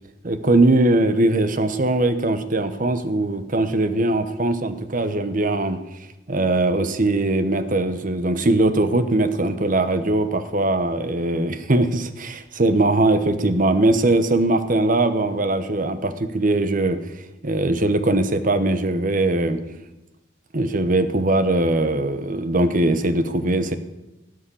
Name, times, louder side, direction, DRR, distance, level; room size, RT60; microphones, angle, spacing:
voice 1, 0.2-5.8 6.3-17.0 17.4-19.6 20.5-23.8, right 2 dB, 45° right, 11 dB, 1.1 m, -20 dB
17.5 x 6.4 x 9.9 m, 0.98 s
head